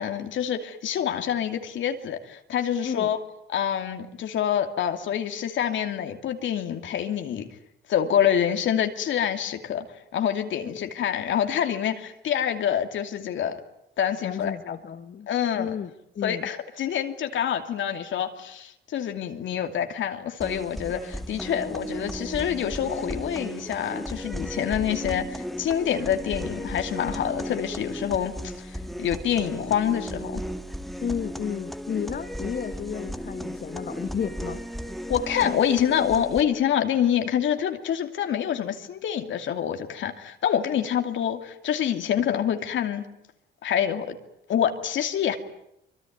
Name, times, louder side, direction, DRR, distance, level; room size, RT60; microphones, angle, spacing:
voice 1, 0.0-3.2 3.5-7.5 7.9-9.8 10.1-13.6 14.0-14.8 15.3-15.7 16.2-30.4 35.1-43.0 43.6-44.1 44.5-45.4, left 9 dB, 70° left, 6 dB, 2.7 m, -26 dB
voice 2, 14.2-15.3 15.5-16.5 31.0-34.6, left 7 dB, 50° left, 7 dB, 1.7 m, -32 dB
sound 1, 20.4-36.4, equal, ahead, 1.9 m, -35 dB
25.0 x 23.5 x 9.4 m, 0.79 s
cardioid pair, 90°, 20 cm